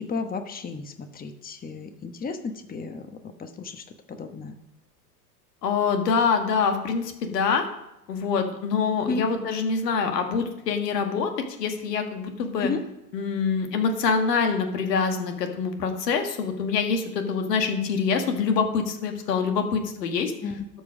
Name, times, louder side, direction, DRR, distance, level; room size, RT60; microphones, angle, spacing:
voice 1, 0.0-4.6 9.0-9.2 12.6-12.8 20.4-20.6, left 4 dB, 20° left, 7 dB, 1.0 m, -33 dB
voice 2, 5.6-7.7 8.1-11.3 11.6-12.7 13.1-20.3, left 5 dB, 80° left, 5 dB, 1.7 m, -25 dB
12.5 x 4.7 x 6.2 m, 0.88 s
hypercardioid pair, 90°, 48 cm